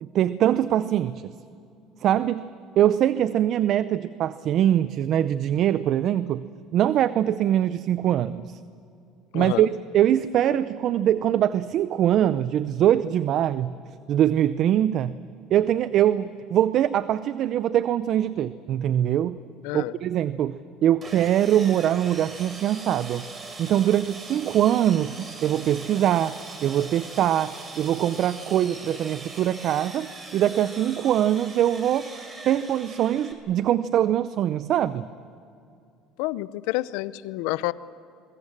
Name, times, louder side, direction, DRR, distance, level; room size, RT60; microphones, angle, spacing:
voice 1, 0.0-1.3 2.0-2.5 2.8-6.5 6.7-8.6 9.3-9.7 9.9-13.7 14.1-15.2 15.5-19.4 19.7-23.2 23.6-32.1 32.5-35.1, right 11 dB, 55° right, 15 dB, 0.6 m, -23 dB
voice 2, 9.3-9.7 19.6-19.9 36.2-37.7, left 18 dB, 80° left, 17 dB, 0.7 m, -29 dB
Sawing, 21.0-33.3, right 3 dB, 30° right, 4.6 m, -41 dB
27.0 x 22.0 x 7.4 m, 2.4 s
supercardioid pair, 100°, 0 cm